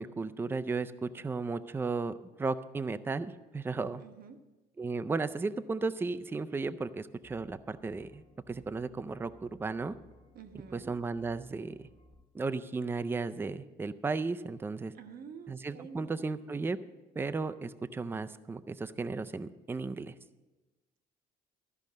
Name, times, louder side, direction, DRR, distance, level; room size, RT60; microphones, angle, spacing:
voice 1, 0.0-4.0 4.8-9.9 10.7-11.8 12.3-14.9 15.5-16.8 17.2-20.1, right 4 dB, 15° right, 12 dB, 0.4 m, -35 dB
voice 2, 4.0-4.4 10.3-10.9 14.9-16.3, right 6 dB, 60° right, 7 dB, 1.0 m, -49 dB
sound 1, 7.2-12.2, left 1 dB, 40° left, 0.9 m, -61 dB
13.5 x 5.3 x 7.4 m, 1.2 s
cardioid pair, 110°, 17 cm